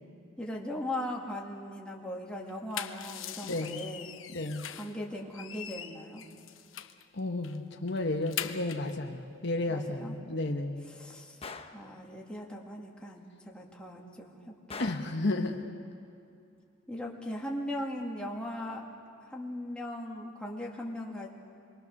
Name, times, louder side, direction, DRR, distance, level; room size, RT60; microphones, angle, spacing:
voice 1, 0.4-4.1 4.8-6.2 9.7-10.2 10.9-11.4 11.7-15.0 15.3-15.6 16.9-18.9 19.3-21.3, left 1 dB, 5° left, -2 dB, 2.4 m, -39 dB
sound 1, 2.5-5.0 5.3-7.0 7.4-7.6 7.9-8.9, left 10 dB, 80° left, 1.0 m, -41 dB
voice 2, 3.4-3.8 4.3-4.7 7.1-10.9 14.8-15.7, left 2 dB, 60° left, 4 dB, 1.2 m, -32 dB
Gunshot gunfire, 11.4-11.8 14.7-15.2, left 4 dB, 30° left, 1.0 m, -42 dB
28.0 x 23.0 x 6.6 m, 2.5 s
head